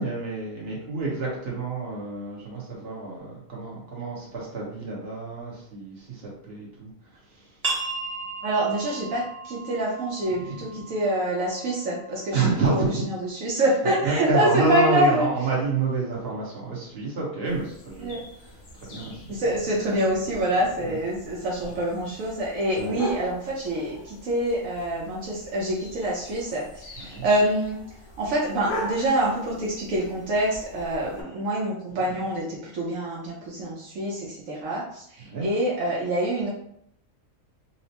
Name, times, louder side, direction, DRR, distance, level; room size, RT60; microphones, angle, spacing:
voice 1, 0.0-7.6 10.3-10.9 12.3-13.1 13.5-13.6 14.0-19.4 20.8-21.0 22.8-23.0 27.0-27.3 31.9-32.2 35.2-35.5, right 3 dB, 45° right, -4 dB, 1.2 m, -29 dB
sound 1, 7.6-13.0, right 4 dB, 30° right, 1.0 m, -36 dB
voice 2, 8.4-12.4 12.7-15.2 18.0-18.2 19.3-27.8 28.2-36.5, right 1 dB, 75° right, -5 dB, 1.1 m, -26 dB
sound 2, 17.5-31.2, equal, 65° left, 1.1 m, -40 dB
4.3 x 2.1 x 2.8 m, 0.72 s
omnidirectional pair, 1.5 m